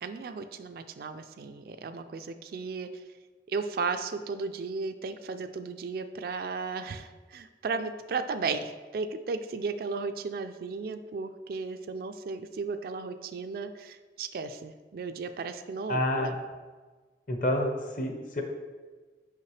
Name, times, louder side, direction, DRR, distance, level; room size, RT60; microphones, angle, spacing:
voice 1, 0.0-3.0 3.5-16.3, right 4 dB, 55° right, 9 dB, 0.3 m, -35 dB
voice 2, 15.9-16.4 17.3-18.4, left 1 dB, 50° left, 4 dB, 0.7 m, -28 dB
5.7 x 5.3 x 3.2 m, 1.4 s
head